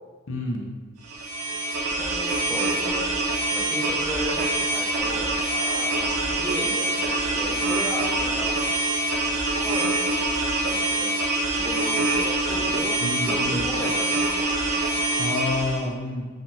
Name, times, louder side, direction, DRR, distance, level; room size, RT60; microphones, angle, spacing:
voice 1, 0.3-0.7 13.0-13.7 15.2-16.3, left 2 dB, 55° left, 1 dB, 0.8 m, -28 dB
sound 1, 1.0-15.8, right 2 dB, 80° right, 1.0 m, -25 dB
voice 2, 2.0-3.1 3.5-5.3 5.9-8.6 9.6-10.2 10.6-13.0 13.2-14.5, left 1 dB, 5° left, -4 dB, 1.0 m, -35 dB
Screaming, 5.5-6.0 7.5-7.7, left 4 dB, 35° left, 0.3 m, -38 dB
5.5 x 5.5 x 3.4 m, 1.4 s
head